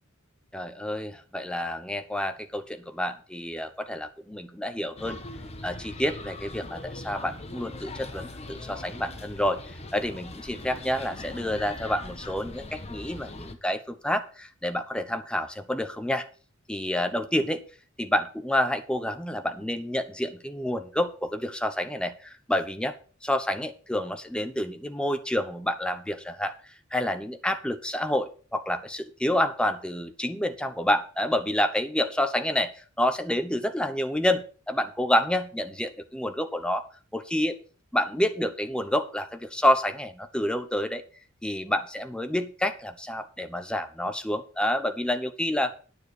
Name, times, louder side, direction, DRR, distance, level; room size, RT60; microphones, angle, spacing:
voice 1, 0.5-5.2 5.6-9.6 9.9-16.3 16.7-17.6 18.0-22.9 23.2-26.5 26.9-32.7 33.0-36.9 37.1-37.6 37.9-41.0 41.4-45.7, left 1 dB, 5° left, 8 dB, 0.9 m, -28 dB
sound 1, 5.0-13.5, left 2 dB, 30° left, 1.2 m, -40 dB
9.7 x 6.6 x 6.7 m, 0.39 s
head